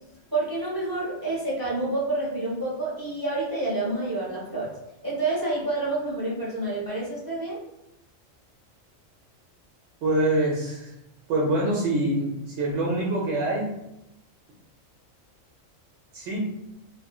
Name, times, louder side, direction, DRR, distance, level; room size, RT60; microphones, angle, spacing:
voice 1, 0.3-4.7 5.0-7.6, right 2 dB, 30° right, -6 dB, 0.4 m, -28 dB
voice 2, 10.0-10.9 11.3-13.7 16.1-16.4, right 1 dB, 65° right, -4 dB, 0.8 m, -25 dB
2.7 x 2.5 x 2.3 m, 0.87 s
omnidirectional pair, 1.4 m